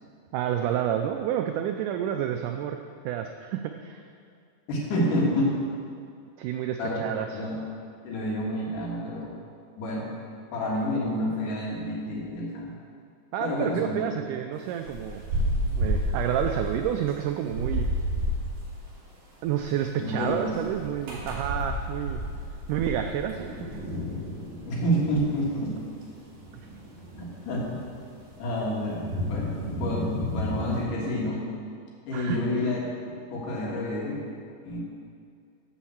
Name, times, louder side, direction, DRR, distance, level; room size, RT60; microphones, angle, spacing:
voice 1, 0.3-4.0 6.4-7.4 13.3-15.2 15.8-17.9 19.4-22.2 22.7-23.5 23.7-23.8 32.1-32.6, right 10 dB, 90° right, 6 dB, 1.8 m, -29 dB
voice 2, 4.7-5.6 6.8-7.1 7.3-7.6 8.0-9.3 9.8-10.1 10.5-12.7 13.4-14.0 20.0-20.6 24.7-25.7 27.2-27.8 28.4-31.4 32.1-32.8 33.3-34.2 34.6-34.8, equal, 65° left, -4 dB, 3.2 m, -29 dB
sound 1, 14.6-18.6 19.5-19.6 20.2-30.8, equal, 55° right, 3.7 m, -32 dB
12.0 x 5.5 x 7.2 m, 2.3 s
omnidirectional pair, 4.2 m